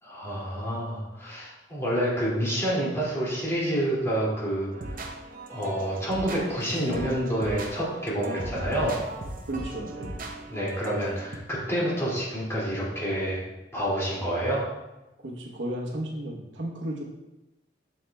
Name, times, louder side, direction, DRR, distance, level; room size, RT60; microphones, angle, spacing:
voice 1, 0.0-5.0 5.5-9.0 10.5-13.4 13.7-14.6, right 1 dB, 15° left, -7 dB, 2.3 m, -28 dB
sound 1, 4.7-11.4, right 2 dB, 50° right, 0.7 m, -38 dB
voice 2, 9.5-10.2 15.2-17.0, right 1 dB, 85° right, 0 dB, 1.0 m, -34 dB
7.3 x 6.5 x 2.3 m, 1.0 s
head